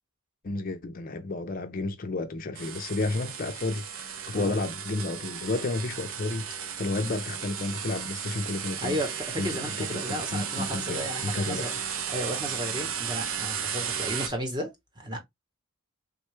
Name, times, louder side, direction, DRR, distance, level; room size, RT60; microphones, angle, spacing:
voice 1, 0.4-6.4 6.8-9.0 9.4-11.6, left 2 dB, 40° left, 0.4 m, -31 dB
sound 1, 2.5-14.3, right 8 dB, 65° right, 0.5 m, -35 dB
voice 2, 8.8-11.7 12.1-15.2, equal, 20° right, 0.8 m, -34 dB
3.6 x 2.2 x 3.1 m
head